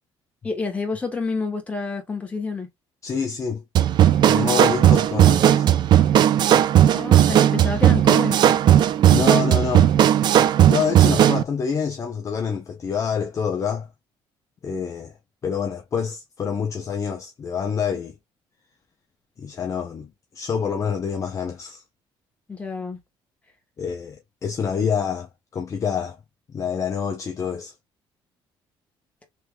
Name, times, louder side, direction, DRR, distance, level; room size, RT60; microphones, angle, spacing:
voice 1, 0.4-2.7 6.9-8.4 22.5-23.0, left 4 dB, 15° left, 1.1 m, -28 dB
voice 2, 3.0-3.6 4.3-5.7 9.1-9.9 10.7-13.9 14.6-15.1 15.4-18.1 19.4-20.1 20.3-21.8 23.8-26.2 26.5-27.7, left 7 dB, 35° left, 0.6 m, -27 dB
sound 1, 3.8-11.4, right 11 dB, 50° right, 0.4 m, -16 dB
3.3 x 3.2 x 2.2 m
cardioid pair, 140°, 9 cm